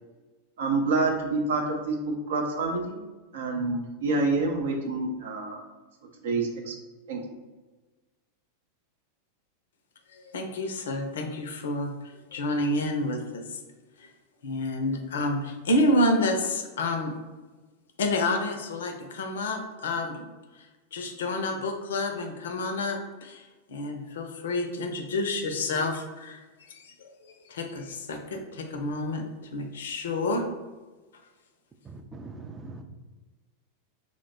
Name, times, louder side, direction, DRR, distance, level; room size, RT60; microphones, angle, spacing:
voice 1, 0.6-3.0 3.3-5.6 6.2-6.7 7.1-7.2, right 3 dB, 60° right, 1 dB, 0.6 m, -27 dB
voice 2, 10.1-11.9 12.3-13.4 14.4-17.1 18.0-20.3 20.9-23.4 23.7-26.4 26.7-29.2 29.5-30.5, left 1 dB, 60° left, 4 dB, 0.4 m, -29 dB
voice 3, 31.9-32.8, right 3 dB, 15° right, 4 dB, 0.4 m, -42 dB
2.9 x 2.1 x 3.9 m, 1.2 s
figure-of-eight pair, 90°, 0 cm